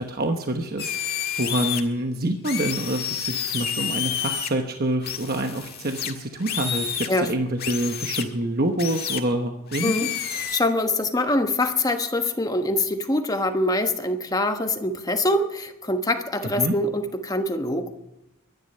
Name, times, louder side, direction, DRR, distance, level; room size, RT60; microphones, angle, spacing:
voice 1, 0.0-10.0 16.6-16.7, right 1 dB, 45° right, 4 dB, 1.1 m, -27 dB
sound 1, 0.8-1.8 2.4-4.5 5.0-7.1 7.6-8.2 8.8-9.2 9.7-10.6, left 9 dB, 45° left, 1.8 m, -29 dB
voice 2, 9.8-17.9, left 1 dB, 15° left, 6 dB, 1.3 m, -24 dB
23.5 x 11.0 x 5.5 m, 0.90 s
head